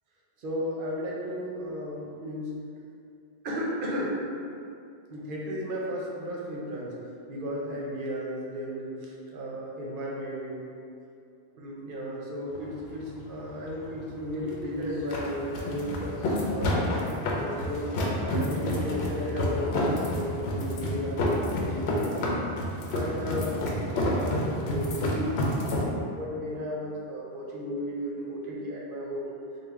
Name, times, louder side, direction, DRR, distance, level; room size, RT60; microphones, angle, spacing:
voice 1, 0.4-2.6 3.4-4.2 5.1-6.9 7.3-10.6 11.5-16.2 16.5-17.9 18.2-22.3 22.8-29.3, equal, 60° right, -3 dB, 0.7 m, -34 dB
sound 1, 12.5-25.9, left 1 dB, 85° left, 0.8 m, -29 dB
3.2 x 2.2 x 3.5 m, 2.4 s
omnidirectional pair, 1.1 m